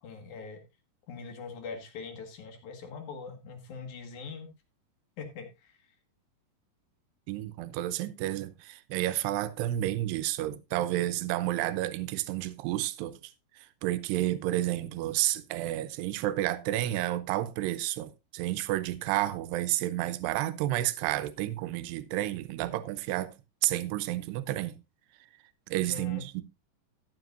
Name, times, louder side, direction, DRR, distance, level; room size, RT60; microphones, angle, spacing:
voice 1, 0.0-0.6 1.1-4.5 5.2-5.7 25.9-26.2, left 5 dB, 55° left, 2.7 m, -42 dB
voice 2, 7.3-13.2 13.5-23.3 23.6-24.8 25.7-26.4, right 15 dB, 80° right, 2.8 m, -31 dB
14.0 x 9.8 x 2.5 m
omnidirectional pair, 5.0 m